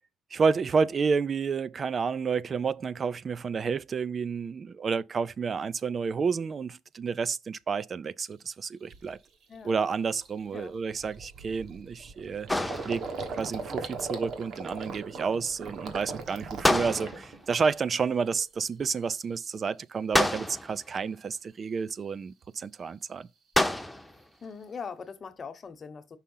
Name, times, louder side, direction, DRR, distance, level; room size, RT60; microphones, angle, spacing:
voice 1, 0.3-9.2 9.6-12.5 12.8-23.3, right 5 dB, 45° right, 0.4 m, -30 dB
Gurgling, 8.3-8.4 8.9-9.2 9.5-9.7 10.0-18.0 18.3-19.0, right 4 dB, 70° right, 1.5 m, -39 dB
sound 1, 12.5-13.4 16.6-17.5 20.1-20.9 23.5-24.2, left 1 dB, 5° left, 0.7 m, -27 dB
voice 2, 24.1-26.2, left 5 dB, 40° left, 1.0 m, -42 dB
5.7 x 3.6 x 5.4 m
cardioid pair, 90°, 0 cm